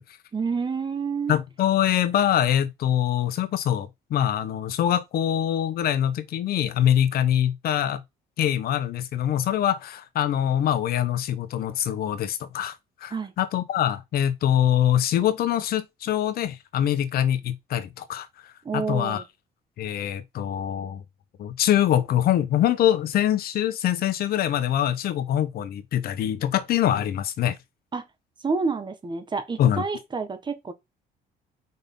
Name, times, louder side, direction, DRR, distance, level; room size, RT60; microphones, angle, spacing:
voice 1, 0.3-1.4 13.1-13.3 18.6-19.2 27.9-28.1 28.4-30.7, right 4 dB, 25° right, 1.3 m, -28 dB
voice 2, 1.3-8.0 8.4-12.8 13.0-19.2 19.8-21.0 21.4-27.6 29.6-29.8, left 11 dB, 65° left, 1.1 m, -24 dB
5.3 x 4.0 x 5.4 m
cardioid pair, 110°, 17 cm